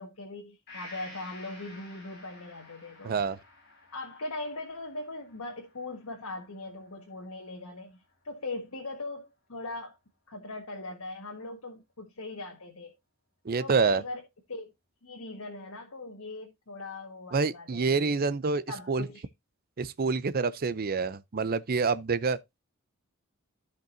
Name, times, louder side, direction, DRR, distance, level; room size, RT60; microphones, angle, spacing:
voice 1, 0.0-3.2 3.9-10.0 10.3-12.9 13.6-14.2 14.5-14.7 15.0-18.1 18.7-19.3, left 2 dB, 90° left, 1.6 m, -40 dB
Gong, 0.7-8.3 8.7-8.8, left 2 dB, 50° left, 7.0 m, -52 dB
voice 2, 3.0-3.4 13.5-14.0 17.3-19.1 19.8-22.4, right 4 dB, 45° right, 0.5 m, -27 dB
14.5 x 5.2 x 2.6 m
head